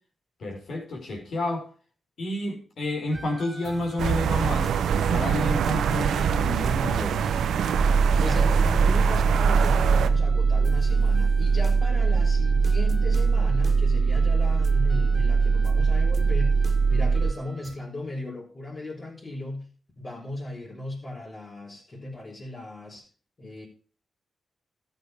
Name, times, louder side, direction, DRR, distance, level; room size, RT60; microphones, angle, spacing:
voice 1, 0.4-1.7 2.2-7.3, left 1 dB, 70° left, 2 dB, 5.0 m, -30 dB
sound 1, 3.1-17.8, right 3 dB, 35° right, 2.0 m, -44 dB
sound 2, 4.0-10.1, right 8 dB, 85° right, 0.9 m, -24 dB
sound 3, 7.8-17.3, right 4 dB, 60° right, 0.6 m, -21 dB
voice 2, 8.2-16.6 16.9-19.7 20.0-23.1 23.4-23.7, left 2 dB, 40° left, -5 dB, 4.9 m, -36 dB
13.0 x 8.4 x 4.7 m, 0.40 s
cardioid pair, 55°, 0 cm